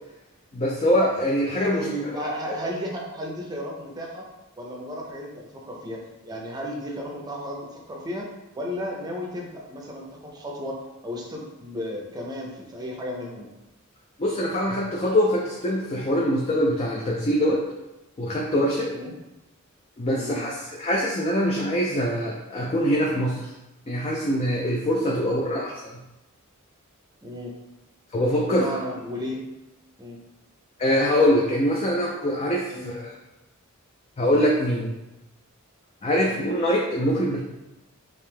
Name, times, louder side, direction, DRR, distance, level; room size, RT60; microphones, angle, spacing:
voice 1, 0.5-2.2 14.2-17.6 18.2-18.9 20.0-23.5 23.9-25.8 28.1-28.8 30.8-33.1 34.2-34.9 36.0-37.4, equal, 30° left, -3 dB, 0.4 m, -23 dB
voice 2, 1.7-4.3 4.6-13.5 18.9-19.1 20.2-20.4 25.2-25.4 27.2-27.5 28.5-29.4 30.0-30.2 32.7-32.9 36.2-36.4, equal, 20° right, -1 dB, 0.6 m, -34 dB
3.5 x 2.7 x 3.3 m, 0.97 s
head